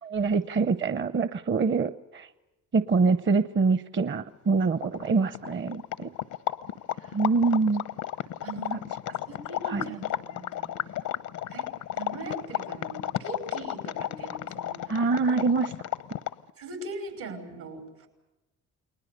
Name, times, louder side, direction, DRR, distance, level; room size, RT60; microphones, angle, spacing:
voice 1, 0.0-2.3 2.7-6.1 7.1-7.8 9.6-9.8 14.9-15.7, right 4 dB, 40° right, 13 dB, 0.8 m, -25 dB
sound 1, 4.5-4.6 4.8-16.5, left 12 dB, 80° left, 0.9 m, -33 dB
voice 2, 8.4-8.9 9.3-10.8 11.5-11.7 11.9-14.8 15.3-15.4 16.6-18.1, right 2 dB, 80° right, 6 dB, 5.7 m, -40 dB
29.5 x 20.5 x 6.7 m, 0.99 s
cardioid pair, 90°, 30 cm